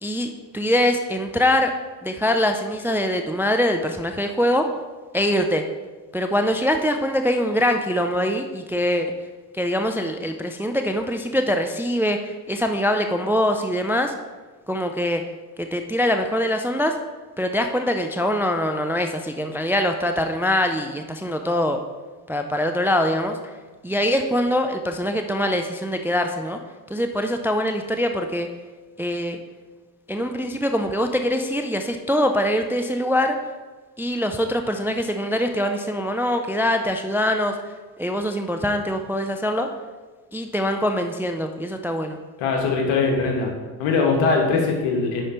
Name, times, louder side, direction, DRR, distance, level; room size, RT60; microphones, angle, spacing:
voice 1, 0.0-1.7 2.0-4.7 5.1-5.6 6.1-9.1 9.6-14.1 14.7-15.2 15.6-17.0 17.4-21.8 22.3-23.4 23.8-26.6 26.9-28.5 29.0-29.4 30.1-33.4 34.0-37.6 38.0-39.7 40.3-42.2, left 1 dB, 5° right, 6 dB, 0.3 m, -23 dB
voice 2, 42.4-43.5 43.8-45.2, left 4 dB, 75° left, 1 dB, 1.5 m, -21 dB
5.7 x 4.9 x 4.3 m, 1.3 s
hypercardioid pair, 55°, 47 cm